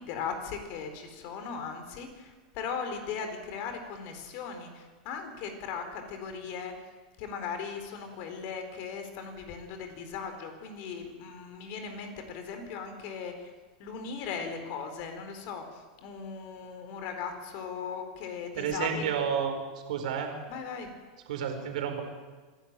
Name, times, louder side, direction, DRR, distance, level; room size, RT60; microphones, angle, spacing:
voice 1, 0.0-6.7 7.2-13.5 13.8-19.1 20.5-20.9, left 6 dB, 55° left, 6 dB, 4.4 m, -38 dB
voice 2, 18.5-19.6 19.9-20.3 21.3-22.0, right 7 dB, 75° right, 5 dB, 4.6 m, -30 dB
26.0 x 11.5 x 9.0 m, 1.4 s
supercardioid pair, 125°, 4 cm